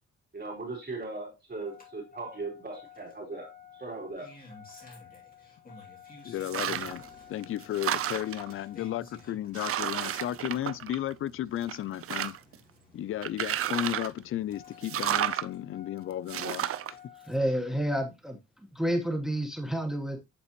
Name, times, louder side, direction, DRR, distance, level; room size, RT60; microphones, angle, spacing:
voice 1, 0.3-3.5 3.8-4.3, right 3 dB, 35° right, 3.5 m, -38 dB
Engine starting, 1.6-17.6 18.8-18.9, left 5 dB, 30° left, 2.7 m, -52 dB
voice 2, 6.2-7.0 7.3-12.4 12.9-17.0, left 12 dB, 45° left, 0.4 m, -34 dB
sound 1, 6.4-7.1 7.4-8.5 9.1-9.2 9.5-11.3 11.6-12.6 13.2-14.2 14.8-15.5 16.3-16.9, right 11 dB, 50° right, 0.5 m, -31 dB
voice 3, 17.3-18.4 18.7-20.2, equal, ahead, 1.2 m, -29 dB
8.3 x 4.1 x 2.9 m
cardioid pair, 90°, 30 cm